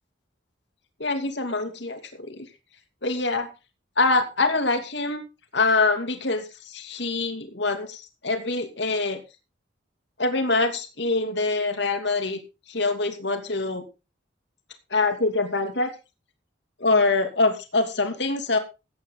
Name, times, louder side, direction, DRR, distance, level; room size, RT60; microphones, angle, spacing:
voice 1, 1.0-2.5 3.0-3.5 4.0-5.2 5.5-9.2 10.2-12.4 12.7-13.9 14.9-15.9 16.8-18.6, left 3 dB, 65° left, 6 dB, 2.7 m, -24 dB
16.0 x 10.0 x 3.8 m, 0.29 s
head